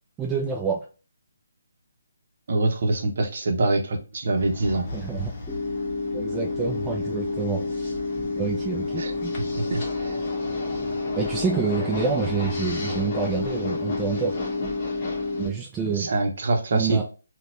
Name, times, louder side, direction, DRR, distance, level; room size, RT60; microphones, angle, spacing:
voice 1, 0.2-0.8 4.9-5.3 6.1-7.9 8.4-9.3 11.2-14.4 15.3-16.1 16.7-17.0, right 6 dB, 15° right, 0 dB, 0.3 m, -28 dB
voice 2, 2.5-4.9 9.0-9.1 9.5-10.1 15.9-17.0, right 2 dB, 55° right, 4 dB, 0.7 m, -24 dB
sound 1, 4.3-15.5, left 2 dB, 35° left, 0.9 m, -37 dB
sound 2, 5.5-15.5, left 3 dB, 5° left, 1.5 m, -29 dB
4.0 x 2.2 x 2.4 m, 0.33 s
figure-of-eight pair, 150°, 0 cm